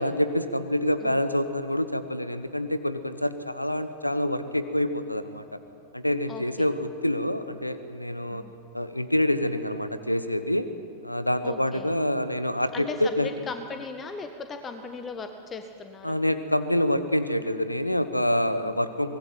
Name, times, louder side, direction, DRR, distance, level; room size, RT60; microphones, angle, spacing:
voice 1, 0.0-5.6 5.9-8.4 8.7-10.7 11.0-13.3 16.0-19.2, left 1 dB, 85° left, 12 dB, 1.3 m, -26 dB
voice 2, 6.3-6.7 8.3-8.5 11.4-11.9 12.7-16.2 18.6-18.8, left 4 dB, 20° left, 7 dB, 1.5 m, -38 dB
24.0 x 20.0 x 9.2 m, 2.5 s
figure-of-eight pair, 90°, 0 cm